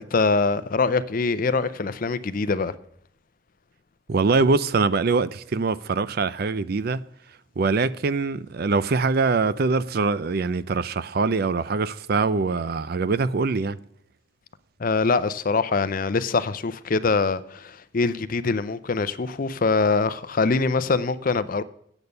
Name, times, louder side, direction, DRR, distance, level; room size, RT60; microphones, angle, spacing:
voice 1, 0.0-2.8 14.8-21.6, left 4 dB, 40° left, 0.5 m, -23 dB
voice 2, 4.1-7.0 7.6-13.8, right 4 dB, 50° right, 0.4 m, -23 dB
8.9 x 8.0 x 6.7 m
head